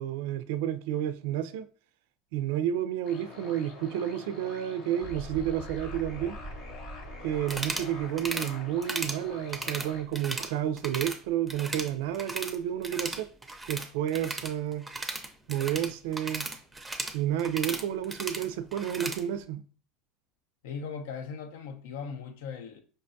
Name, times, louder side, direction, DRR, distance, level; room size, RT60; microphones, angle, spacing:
voice 1, 0.0-1.6 2.3-6.4 7.2-13.3 13.7-14.9 15.5-16.5 17.1-19.6, right 11 dB, 75° right, 0.3 m, -31 dB
sound 1, 3.0-10.0, left 3 dB, 60° left, 0.9 m, -46 dB
sound 2, 5.0-8.6, right 1 dB, 10° left, 0.8 m, -43 dB
sound 3, 7.4-7.9 8.2-8.5 8.8-9.2 9.5-10.5 10.8-11.2 11.5-12.6 12.8-19.2, right 2 dB, 10° right, 0.5 m, -36 dB
voice 2, 20.6-22.8, left 6 dB, 85° left, 0.5 m, -38 dB
5.1 x 2.2 x 2.6 m
supercardioid pair, 120°, 0 cm